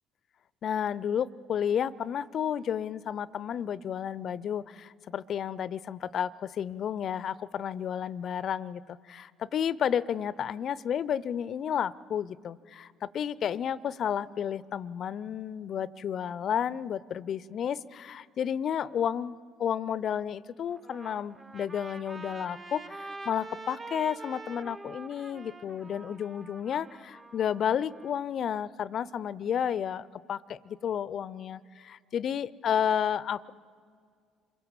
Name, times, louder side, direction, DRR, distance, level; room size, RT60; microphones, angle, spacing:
voice 1, 0.6-33.5, left 8 dB, 50° left, 20 dB, 0.6 m, -32 dB
Trumpet, 20.7-28.1, right 2 dB, 30° right, 1.3 m, -45 dB
26.5 x 22.5 x 7.2 m, 2.1 s
hypercardioid pair, 55°, 0 cm